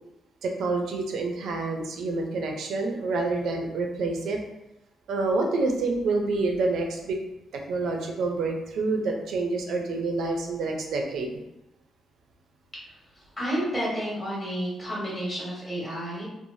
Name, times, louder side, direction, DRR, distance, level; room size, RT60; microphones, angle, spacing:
voice 1, 0.4-4.4 5.1-7.2 7.5-11.4, right 3 dB, 80° right, 2 dB, 0.5 m, -27 dB
voice 2, 12.8-16.3, equal, 20° left, -6 dB, 1.2 m, -31 dB
3.2 x 2.0 x 2.6 m, 0.91 s
cardioid pair, 130°, 0 cm